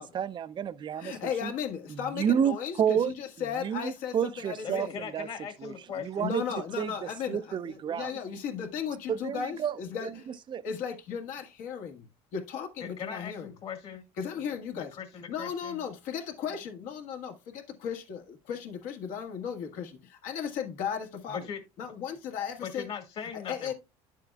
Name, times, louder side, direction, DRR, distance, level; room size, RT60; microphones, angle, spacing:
voice 1, 0.0-1.5 1.9-3.1 3.6-5.3 5.6-6.4 6.8-8.1 9.1-9.8 10.0-10.6, right 8 dB, 35° right, 0.6 m, -30 dB
voice 2, 1.0-4.9 6.2-10.3 10.6-13.5 14.2-15.0 15.3-21.5 21.8-22.9 23.5-23.7, left 7 dB, 70° left, 1.7 m, -36 dB
voice 3, 4.6-6.3 12.8-14.0 14.8-15.8 21.3-21.6 22.6-23.7, left 7 dB, 45° left, 2.0 m, -39 dB
9.8 x 7.4 x 2.3 m
supercardioid pair, 105°, 14 cm